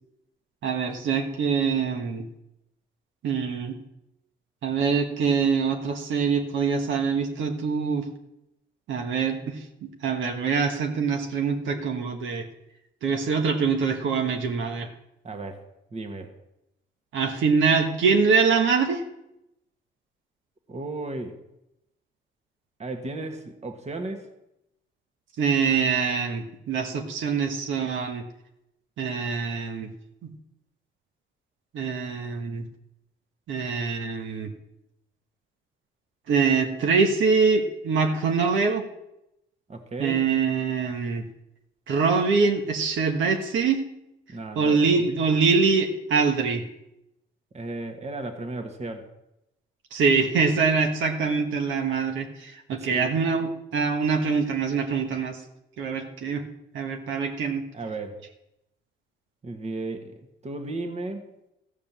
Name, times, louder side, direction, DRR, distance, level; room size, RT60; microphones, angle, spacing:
voice 1, 0.6-2.2 3.2-3.8 4.6-8.1 8.9-12.5 13.0-14.9 17.1-19.0 25.4-28.2 29.0-29.9 30.2-30.3 31.7-32.6 33.5-34.5 36.3-38.9 40.0-41.2 41.9-43.8 44.5-46.6 49.9-55.4 55.8-56.4 56.7-57.6, right 5 dB, 75° right, 3 dB, 1.3 m, -24 dB
voice 2, 15.2-15.6 15.9-16.3 20.7-21.4 22.8-24.3 39.7-40.2 44.3-45.2 47.5-49.1 52.8-53.1 57.7-58.2 59.4-60.1 60.4-61.3, right 2 dB, 35° right, 5 dB, 1.6 m, -34 dB
14.5 x 5.1 x 7.5 m, 0.86 s
cardioid pair, 90°, 20 cm